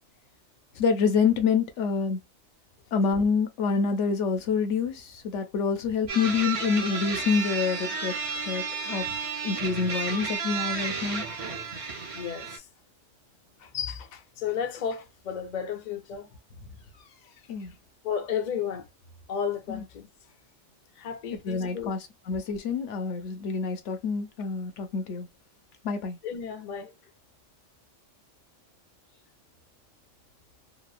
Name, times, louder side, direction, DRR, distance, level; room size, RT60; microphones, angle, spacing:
voice 1, 0.8-2.2 2.9-8.1 8.5-9.2 9.4-11.2 17.5-17.7 19.7-19.8 21.4-22.0 22.3-25.3 25.8-26.2, left 5 dB, 70° left, 0.9 m, -27 dB
sound 1, 6.1-12.6, right 5 dB, 40° right, 0.5 m, -32 dB
voice 2, 12.1-12.7 13.6-16.3 16.9-17.4 18.0-18.9 19.3-20.1 21.0-21.9 26.2-26.9, left 7 dB, 50° left, 0.6 m, -33 dB
2.9 x 2.0 x 2.3 m
omnidirectional pair, 1.3 m